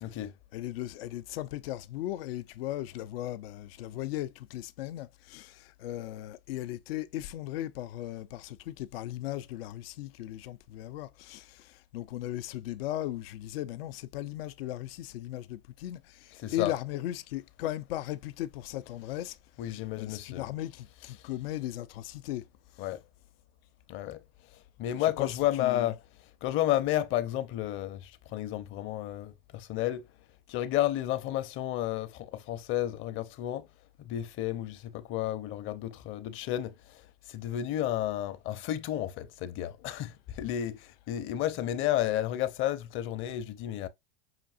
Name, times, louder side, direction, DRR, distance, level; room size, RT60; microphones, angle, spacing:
voice 1, 0.0-0.3 16.4-16.7 19.6-20.5 22.8-23.0 23.9-24.2 24.8-26.0 26.4-30.1 30.5-33.7 34.0-43.9, left 13 dB, 45° left, 0.6 m, -32 dB
voice 2, 0.5-19.4 19.6-22.5 22.8-22.9 25.0-26.0, left 14 dB, 90° left, 0.5 m, -37 dB
5.7 x 2.6 x 2.4 m
supercardioid pair, 120°, 29 cm